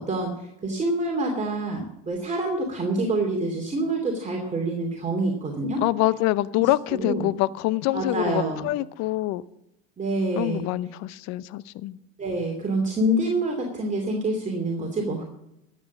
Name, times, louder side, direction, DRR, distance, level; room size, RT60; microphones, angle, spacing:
voice 1, 0.0-5.8 6.6-7.3 7.9-8.6 10.0-10.6 12.2-15.2, right 1 dB, 25° right, 2.7 m, -27 dB
voice 2, 5.8-9.4 10.4-12.0, left 17 dB, 60° left, 0.7 m, -25 dB
12.5 x 8.6 x 7.3 m
hypercardioid pair, 80°, 31 cm